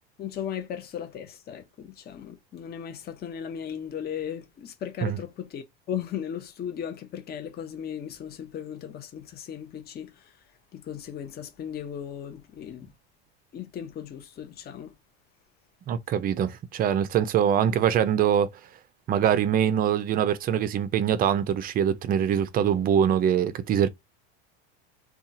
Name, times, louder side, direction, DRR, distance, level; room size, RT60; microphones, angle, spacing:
voice 1, 0.2-10.3 10.7-12.9 13.5-14.9, left 9 dB, 30° left, 0.7 m, -36 dB
voice 2, 15.9-18.5 19.1-23.9, right 9 dB, 30° right, 0.4 m, -23 dB
2.7 x 2.3 x 2.6 m
supercardioid pair, 110°, 32 cm